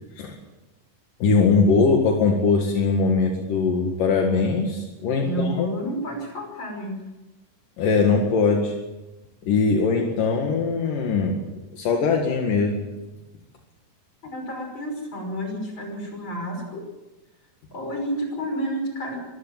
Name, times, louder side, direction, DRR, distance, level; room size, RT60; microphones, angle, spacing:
voice 1, 1.2-5.7 7.8-8.7 9.4-11.4 11.7-12.8, left 4 dB, 75° left, 2 dB, 3.5 m, -21 dB
voice 2, 5.2-7.1 14.2-16.9 17.7-19.2, right 1 dB, 35° left, 3 dB, 6.3 m, -30 dB
24.5 x 14.5 x 7.5 m, 1.1 s
omnidirectional pair, 3.8 m